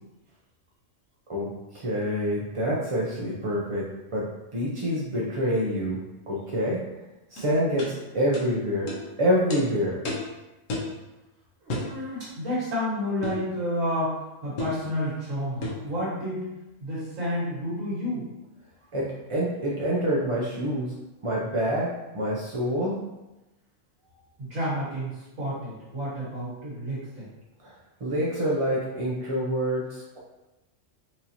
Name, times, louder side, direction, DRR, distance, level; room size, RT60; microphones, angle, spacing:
voice 1, 1.3-6.0 6.3-6.8 7.3-8.9 9.2-10.0 18.9-20.9 21.2-23.0 27.6-27.7 28.0-30.2, equal, 45° right, -5 dB, 0.4 m, -27 dB
sound 1, 7.4-7.5 7.8-7.9 8.3-8.5 8.9-9.0 9.5-9.6 10.1-10.3 10.7-10.9 11.7-11.9 13.2-13.5 14.6-14.8 15.6-15.9, left 2 dB, 80° left, 1.2 m, -32 dB
voice 2, 11.6-14.1 14.4-16.5 16.8-18.3 24.4-27.3, equal, 85° right, -10 dB, 1.9 m, -30 dB
4.5 x 2.6 x 2.8 m, 1.0 s
omnidirectional pair, 1.3 m